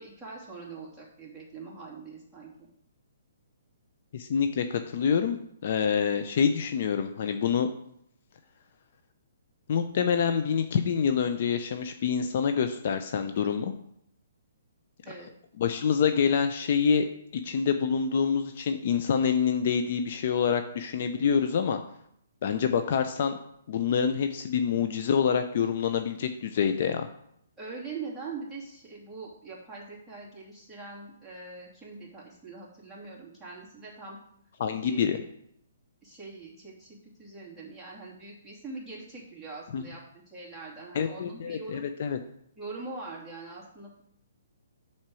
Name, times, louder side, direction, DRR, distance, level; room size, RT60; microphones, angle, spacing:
voice 1, 0.0-2.7 15.0-15.3 27.6-34.2 34.8-35.2 36.0-41.8 42.6-44.0, right 4 dB, ahead, -7 dB, 2.6 m, -43 dB
voice 2, 4.1-7.7 9.7-13.7 15.6-17.1 17.3-21.8 22.4-23.4 23.7-27.1 34.6-35.2 39.7-39.8 40.9-42.2, left 7 dB, 50° left, 8 dB, 0.6 m, -26 dB
7.4 x 4.4 x 6.2 m, 0.73 s
hypercardioid pair, 150°, 0 cm